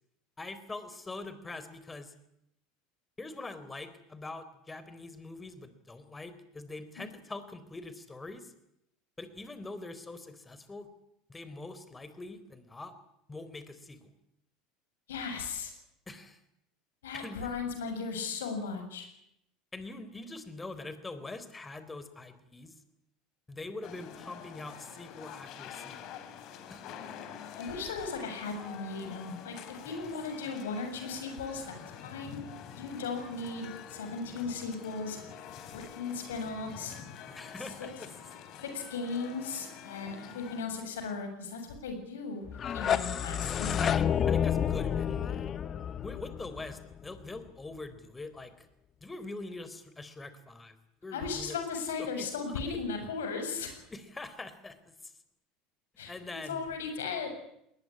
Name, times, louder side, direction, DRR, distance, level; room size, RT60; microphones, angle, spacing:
voice 1, 0.4-2.1 3.2-8.5 9.2-10.9 11.3-12.9 13.3-14.1 16.1-16.4 17.1-17.5 19.7-22.8 23.5-26.0 26.7-26.9 29.9-30.1 37.3-38.1 42.9-43.2 43.8-45.5 46.0-48.7 49.0-50.8 51.0-51.6 52.0-52.8 53.9-55.2 56.1-56.7, left 2 dB, 15° left, 12 dB, 3.9 m, -44 dB
voice 2, 15.1-15.7 17.0-19.1 27.6-32.4 32.7-35.2 35.7-36.9 38.6-43.9 51.1-53.7 56.0-56.1 56.5-57.3, left 4 dB, 90° left, 6 dB, 7.1 m, -37 dB
sound 1, 23.8-40.6, left 8 dB, 60° left, 4.2 m, -47 dB
sound 2, 42.5-47.4, left 8 dB, 40° left, 1.4 m, -30 dB
20.5 x 20.0 x 10.0 m, 0.79 s
hypercardioid pair, 90°, 0 cm